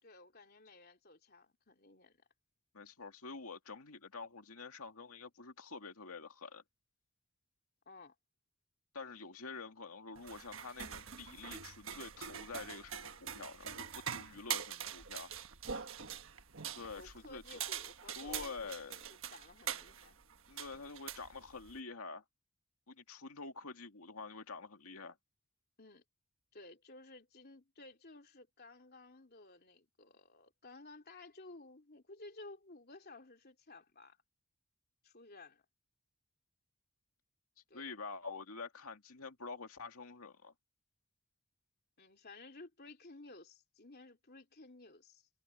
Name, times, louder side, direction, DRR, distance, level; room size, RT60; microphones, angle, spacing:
voice 1, 0.0-2.2 7.8-8.1 16.0-16.3 16.9-20.2 25.8-26.0 26.5-34.2 35.0-35.6 37.7-37.9 42.0-45.3, left 2 dB, 45° left, 3.2 m, -55 dB
voice 2, 2.7-6.6 8.9-15.3 16.8-17.4 18.2-19.1 20.5-22.2 22.9-25.2 37.7-40.5, left 4 dB, 85° left, 2.2 m, -47 dB
sound 1, 10.2-21.8, right 8 dB, 65° right, 1.4 m, -44 dB
head